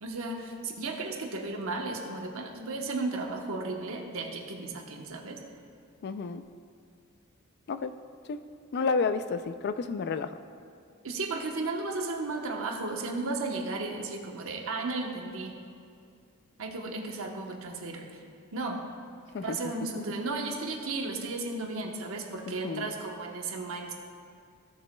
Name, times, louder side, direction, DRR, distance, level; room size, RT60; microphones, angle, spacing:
voice 1, 0.0-5.4 11.0-15.6 16.6-18.2 18.5-18.9 19.3-23.9, right 3 dB, 65° right, 2 dB, 1.0 m, -34 dB
voice 2, 6.0-6.4 7.7-7.9 8.3-8.4 8.7-10.3 19.3-19.6 22.6-22.9, left 4 dB, 50° left, 10 dB, 0.3 m, -30 dB
16.0 x 7.0 x 2.2 m, 2.3 s
head